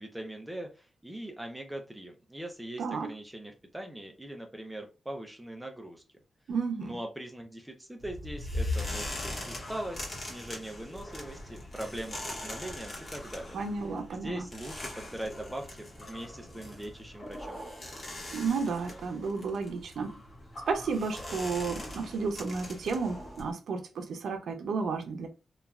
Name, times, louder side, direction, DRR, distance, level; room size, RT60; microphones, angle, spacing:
voice 1, 0.0-6.0 6.8-13.6 14.1-17.6, right 1 dB, 5° right, 0.4 m, -41 dB
voice 2, 2.8-3.1 6.5-7.0 13.5-14.5 18.3-20.1 20.7-25.3, right 4 dB, 85° right, 0.5 m, -32 dB
sound 1, 8.0-23.5, left 1 dB, 45° left, 1.0 m, -40 dB
3.0 x 2.3 x 2.3 m
wide cardioid pair, 125°, 0 cm